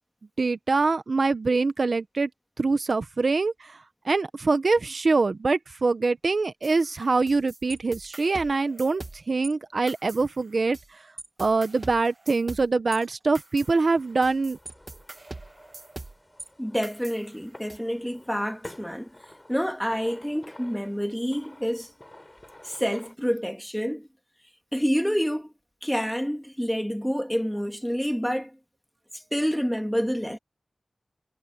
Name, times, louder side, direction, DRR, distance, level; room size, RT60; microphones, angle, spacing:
voice 1, 0.4-2.3 2.6-3.7 4.0-9.0 9.3-10.8 11.4-14.6, right 3 dB, 70° right, 0.9 m, -24 dB
sound 1, 6.6-9.5 9.9-10.9 11.2-16.5 16.8-17.8, right 2 dB, 45° right, 1.7 m, -43 dB
sound 2, 13.5-23.1, left 1 dB, 20° left, 5.3 m, -50 dB
voice 2, 16.6-19.1 19.5-21.9 22.6-24.1 24.7-25.5 25.8-28.6 29.1-30.4, equal, ahead, 2.4 m, -28 dB
wide cardioid pair, 60°, 0 cm